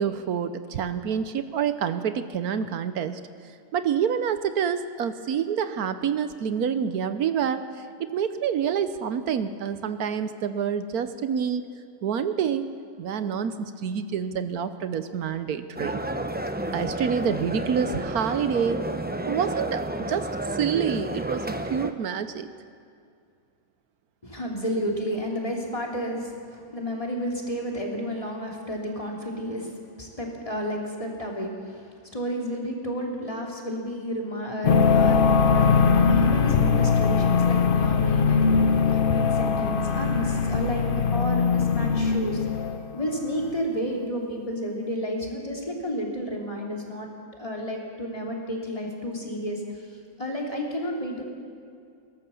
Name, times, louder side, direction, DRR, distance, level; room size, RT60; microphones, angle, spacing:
voice 1, 0.0-3.2 3.7-7.6 8.0-11.6 12.0-12.7 13.0-16.0 16.7-18.8 19.3-22.5, right 7 dB, 75° right, 11 dB, 1.3 m, -27 dB
sound 1, 15.8-21.9, right 1 dB, 10° right, 0.4 m, -31 dB
voice 2, 24.2-29.7 30.0-38.6 38.8-40.9 41.1-49.6 50.2-51.2, equal, 20° left, -1 dB, 3.1 m, -31 dB
sound 2, 34.6-42.9, left 5 dB, 45° left, 0.8 m, -21 dB
22.0 x 18.0 x 7.0 m, 2.3 s
omnidirectional pair, 1.6 m